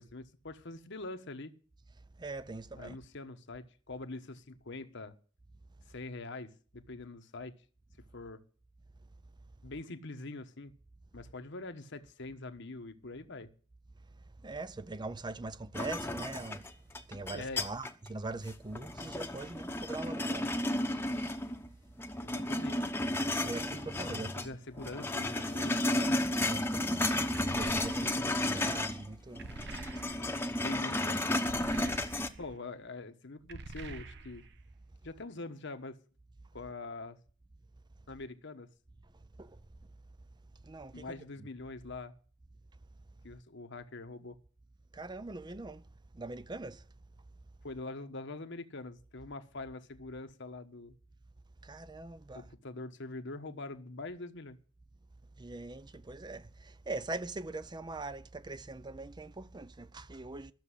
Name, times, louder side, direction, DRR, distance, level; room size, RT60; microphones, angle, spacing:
voice 1, 0.0-1.5 2.8-5.2 5.9-7.6 8.1-8.4 9.6-10.7 11.1-13.5 17.3-17.6 22.2-22.8 23.9-25.9 30.6-31.2 32.4-34.5 35.0-36.0 36.5-37.2 38.1-38.7 40.9-42.1 43.2-44.4 47.6-51.0 52.3-54.6, left 2 dB, 60° left, 1.2 m, -44 dB
voice 2, 2.2-3.0 14.4-16.6 17.1-20.5 23.4-24.5 26.5-27.2 27.6-29.4 32.0-32.1 39.4-39.5 40.7-41.5 44.9-45.8 46.1-46.8 51.6-52.5 55.4-60.5, right 2 dB, 20° right, 0.6 m, -42 dB
sound 1, 15.7-18.1 18.5-21.7 22.0-24.5 24.8-29.1 29.3-32.3, left 1 dB, 10° left, 1.0 m, -33 dB
sound 2, 27.3-28.4 29.4-30.5 31.4-32.5 33.5-34.6, right 3 dB, 55° right, 1.0 m, -46 dB
13.5 x 6.8 x 9.9 m
head